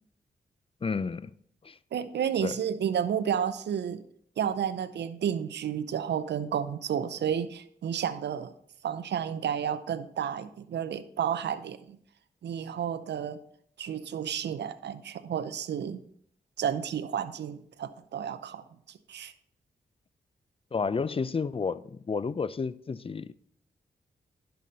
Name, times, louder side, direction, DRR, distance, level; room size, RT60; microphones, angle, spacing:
voice 1, 0.8-1.3 1.6-1.8 2.4-2.6 20.7-23.3, left 5 dB, 30° left, 0.5 m, -31 dB
voice 2, 1.9-4.0 4.4-8.5 8.8-12.0 12.4-13.4 13.8-16.0 16.6-18.6 19.1-19.3, right 8 dB, 75° right, 0.6 m, -31 dB
11.0 x 5.7 x 4.0 m
supercardioid pair, 45°, 18 cm